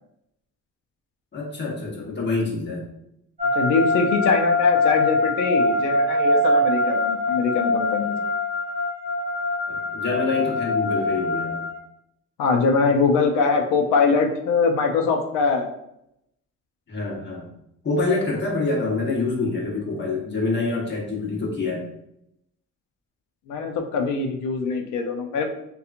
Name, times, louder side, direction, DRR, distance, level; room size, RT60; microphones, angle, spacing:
voice 1, 1.3-2.8 9.7-11.6 16.9-17.5 17.8-21.9, left 3 dB, 35° left, -4 dB, 1.0 m, -26 dB
sound 1, 3.4-11.8, left 2 dB, 20° right, 1.3 m, -23 dB
voice 2, 3.5-8.1 12.4-15.7 23.5-25.5, left 4 dB, 90° left, 4 dB, 0.5 m, -22 dB
2.8 x 2.3 x 2.4 m, 0.79 s
cardioid pair, 90°, 30 cm